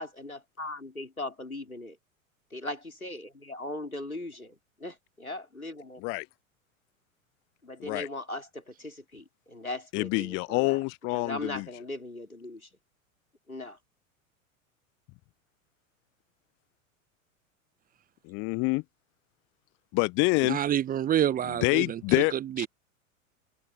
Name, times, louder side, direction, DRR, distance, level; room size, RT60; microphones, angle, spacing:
voice 1, 0.0-2.0 2.5-6.0 7.6-10.8 11.1-12.7 13.5-13.8, left 2 dB, 90° left, 4.1 m, -39 dB
voice 2, 9.9-11.6 18.3-18.8 19.9-20.6 21.6-22.7, left 27 dB, 30° left, 0.6 m, -27 dB
voice 3, 20.4-22.7, right 10 dB, 20° right, 1.0 m, -28 dB
figure-of-eight pair, 90°, 41 cm